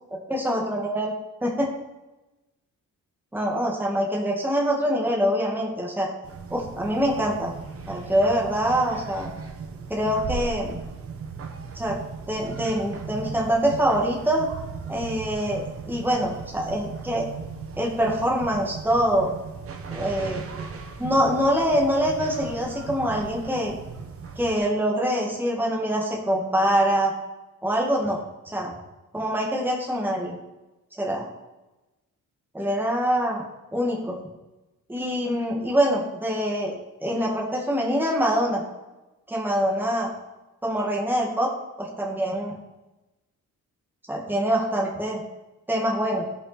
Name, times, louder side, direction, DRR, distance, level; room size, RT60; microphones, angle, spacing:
voice 1, 0.3-1.1 1.4-1.7 3.3-6.1 6.5-7.5 7.9-9.3 9.9-10.8 11.8-12.0 12.3-14.5 14.9-17.3 17.8-19.3 19.9-20.4 21.0-23.7 24.4-27.1 27.6-28.2 28.5-28.7 29.1-30.4 31.0-31.3 32.5-33.4 33.7-34.2 34.9-36.7 37.0-38.6 39.3-40.1 40.6-41.5 41.8-42.6 44.1-45.2 45.7-46.3, equal, 5° right, -2 dB, 2.1 m, -24 dB
sound 1, 6.2-24.6, right 5 dB, 45° right, 1.3 m, -37 dB
17.0 x 5.9 x 4.3 m, 1.0 s
cardioid pair, 150°, 30 cm